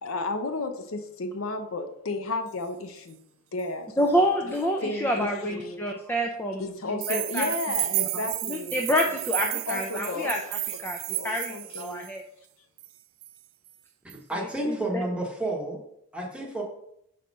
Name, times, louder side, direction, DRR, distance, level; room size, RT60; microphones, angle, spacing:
voice 1, 0.0-3.2 3.5-4.5 4.8-5.8 6.6-10.3 10.7-10.8 11.1-12.1, left 2 dB, 65° left, 7 dB, 0.7 m, -33 dB
voice 2, 4.0-6.6 6.9-7.5 7.9-8.0 8.5-11.0 11.2-12.2 14.4-15.1, equal, 10° left, 2 dB, 0.5 m, -28 dB
sound 1, 7.0-12.1 12.8-12.9 13.2-13.3 14.1-14.2, right 17 dB, 65° right, 0.3 m, -32 dB
voice 3, 14.0-15.8 16.1-16.6, right 1 dB, 5° right, -1 dB, 1.2 m, -31 dB
4.9 x 4.3 x 5.3 m, 0.75 s
head